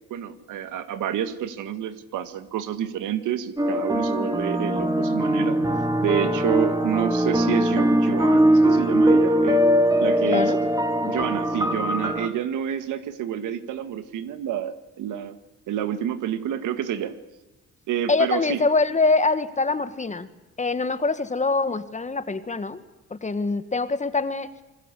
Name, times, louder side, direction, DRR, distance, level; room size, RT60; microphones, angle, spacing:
voice 1, 0.1-5.6 6.0-9.6 10.0-10.5 11.1-15.4 15.7-17.2 17.9-18.6, right 10 dB, 85° right, 11 dB, 1.9 m, -28 dB
sound 1, 3.6-12.3, right 1 dB, 15° right, 2.8 m, -21 dB
voice 2, 10.2-10.6 11.0-11.2 18.1-20.3 20.6-22.8 23.1-24.5, left 3 dB, 25° left, 12 dB, 1.7 m, -24 dB
27.5 x 21.0 x 8.4 m, 1.0 s
cardioid pair, 90°, 30 cm